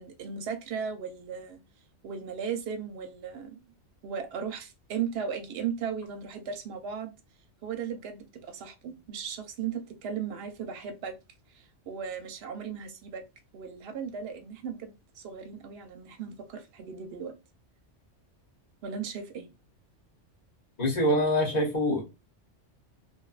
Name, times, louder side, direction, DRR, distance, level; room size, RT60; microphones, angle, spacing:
voice 1, 0.0-1.6 2.0-3.6 4.0-7.1 7.6-11.2 11.5-13.2 13.5-17.3 18.8-19.5, right 7 dB, 65° right, 0.7 m, -36 dB
voice 2, 20.8-22.0, equal, 40° left, 0.8 m, -25 dB
2.7 x 2.2 x 2.3 m
omnidirectional pair, 1.2 m